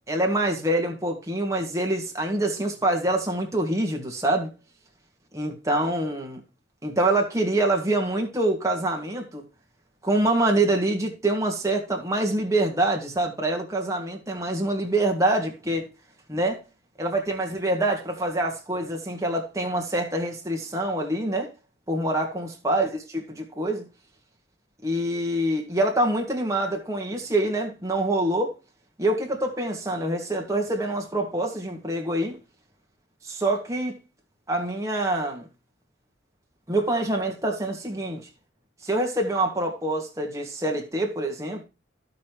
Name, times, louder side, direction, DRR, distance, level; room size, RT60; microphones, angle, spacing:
voice 1, 0.1-4.5 5.3-6.4 6.8-9.4 10.0-15.9 16.3-16.6 17.0-21.5 21.9-23.9 24.8-28.5 29.0-32.4 33.2-33.9 34.5-35.5 36.7-38.2 38.8-41.6, right 1 dB, 15° right, 1.7 m, -25 dB
15.0 x 5.3 x 3.0 m
head